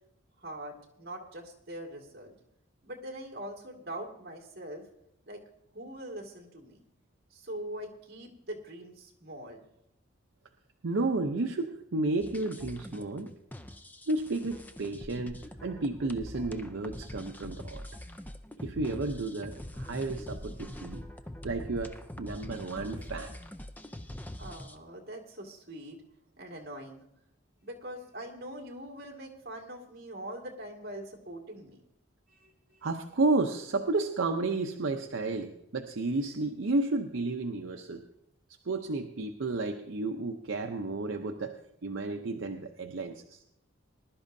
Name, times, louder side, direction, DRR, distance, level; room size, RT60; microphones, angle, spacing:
voice 1, 0.4-2.3 2.8-4.8 5.3-5.4 5.7-6.8 7.3-9.6 24.4-26.0 26.4-27.0 27.6-31.8 32.3-32.8, right 1 dB, 50° right, 1 dB, 2.1 m, -43 dB
voice 2, 10.8-13.3 14.1-17.8 18.6-21.0 21.4-23.3 32.8-38.0 38.6-43.4, right 3 dB, 70° right, 4 dB, 0.6 m, -32 dB
sound 1, 12.2-24.8, left 1 dB, 10° left, 0.4 m, -44 dB
20.5 x 11.5 x 2.7 m, 0.78 s
head